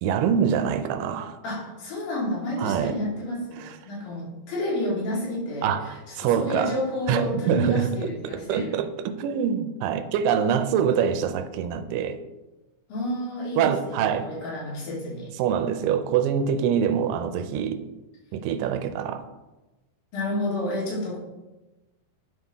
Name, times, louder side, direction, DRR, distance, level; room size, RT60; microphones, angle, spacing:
voice 1, 0.0-1.4 2.6-3.0 5.6-6.7 7.1-7.9 8.2-12.2 13.6-14.3 15.4-17.8 18.3-19.2, right 8 dB, 85° right, 9 dB, 2.2 m, -25 dB
voice 2, 1.4-8.8 12.9-15.3 20.1-21.2, left 1 dB, 85° left, -6 dB, 4.0 m, -30 dB
10.0 x 3.5 x 5.4 m, 1.1 s
omnidirectional pair, 3.9 m